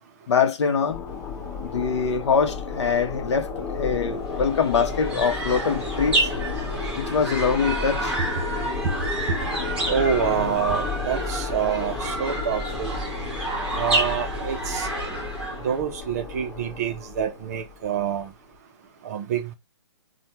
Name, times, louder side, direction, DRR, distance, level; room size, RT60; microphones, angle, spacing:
voice 1, 0.3-1.0 1.6-6.2 7.0-8.2, left 6 dB, 65° left, 0.7 m, -23 dB
sound 1, 0.9-18.2, left 5 dB, 30° left, 0.8 m, -33 dB
sound 2, 4.2-15.8, right 1 dB, 5° right, 0.8 m, -29 dB
voice 2, 8.8-9.4 9.9-12.9 13.8-14.9 15.6-18.3 19.0-19.5, right 7 dB, 35° right, 0.5 m, -27 dB
3.3 x 2.1 x 2.8 m
hypercardioid pair, 155°, 15 cm